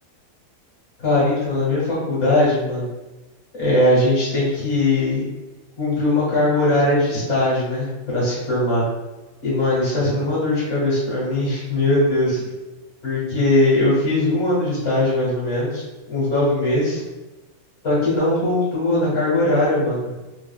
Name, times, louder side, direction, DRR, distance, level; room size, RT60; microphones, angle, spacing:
voice 1, 1.0-2.9 3.5-5.2 5.8-8.9 9.4-12.4 13.0-17.0 17.8-20.1, left 1 dB, 55° left, -7 dB, 1.5 m, -20 dB
3.0 x 2.5 x 2.2 m, 1.1 s
omnidirectional pair, 1.5 m